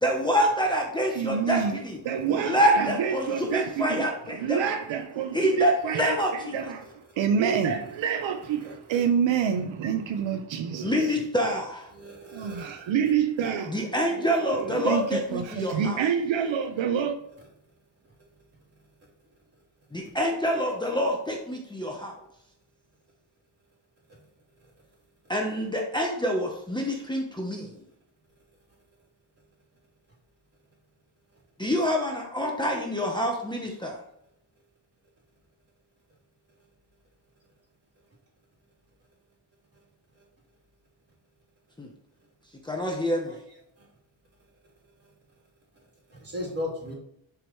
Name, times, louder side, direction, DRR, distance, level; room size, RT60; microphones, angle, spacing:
voice 1, 0.0-2.0 2.3-4.8 5.3-6.7 10.8-11.9 13.7-16.0 19.9-22.1 25.3-27.7 31.6-34.0 41.8-41.9 42.6-43.3, equal, 10° left, 0.9 m, -26 dB
voice 2, 1.1-6.9 7.2-11.2 12.3-13.7 14.1-17.2, right 7 dB, 80° right, 0.8 m, -28 dB
voice 3, 8.6-9.0 11.9-12.7 15.7-15.8 43.3-43.4 46.2-46.9, left 1 dB, 30° right, 3.2 m, -36 dB
10.5 x 4.9 x 3.1 m
wide cardioid pair, 145°, 45 cm